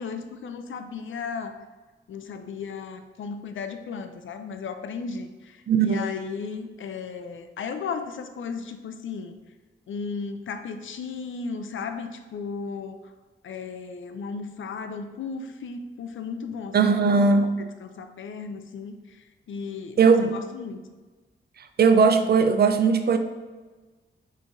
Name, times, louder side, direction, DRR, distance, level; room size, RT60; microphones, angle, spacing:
voice 1, 0.0-1.5 2.1-9.4 9.9-13.0 13.4-19.2 19.5-20.8, left 5 dB, 70° left, 8 dB, 0.4 m, -35 dB
voice 2, 5.7-6.1 16.7-17.5 20.0-20.3 21.6-23.2, right 5 dB, 50° right, 8 dB, 0.4 m, -19 dB
5.4 x 3.1 x 2.5 m, 1.3 s
cardioid pair, 75°, 21 cm